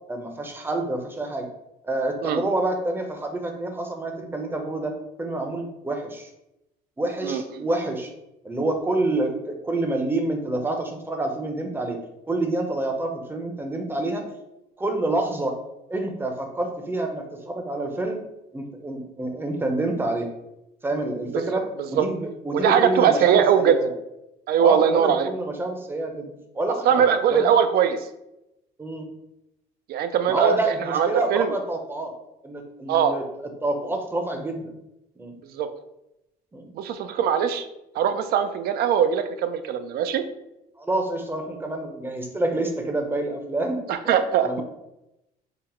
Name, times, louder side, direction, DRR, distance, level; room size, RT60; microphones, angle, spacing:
voice 1, 0.1-1.5 1.8-4.9 5.2-6.3 7.0-8.1 8.4-12.0 12.3-14.3 14.8-15.6 15.9-18.2 18.5-20.3 20.8-23.9 24.6-27.0 27.3-27.5 28.8-29.1 30.3-32.1 32.4-33.2 33.6-34.7 35.2-35.3 36.5-36.7 40.8-44.1 44.4-44.6, right 2 dB, 15° right, 4 dB, 0.6 m, -27 dB
voice 2, 7.2-7.7 21.3-21.4 22.0-22.1 22.5-23.8 24.5-25.3 26.8-28.0 29.9-30.6 30.9-31.5 32.9-33.1 35.5-35.7 36.7-37.7 38.0-40.2 43.9-44.6, right 8 dB, 65° right, 10 dB, 0.4 m, -21 dB
4.0 x 2.0 x 4.2 m, 0.89 s
cardioid pair, 110°, 17 cm